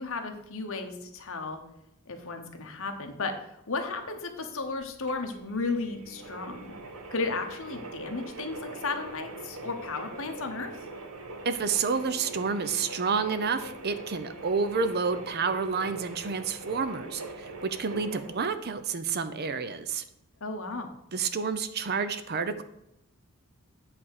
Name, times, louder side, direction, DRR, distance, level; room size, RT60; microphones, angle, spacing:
voice 1, 0.0-1.6 2.1-6.7 7.1-10.9 20.4-20.9, left 3 dB, 60° left, 5 dB, 1.1 m, -34 dB
sound 1, 4.6-18.6, right 2 dB, 70° right, 1.0 m, -42 dB
voice 2, 11.4-20.0 21.1-22.6, right 5 dB, 45° right, 11 dB, 0.6 m, -29 dB
8.6 x 3.5 x 6.5 m, 0.84 s
head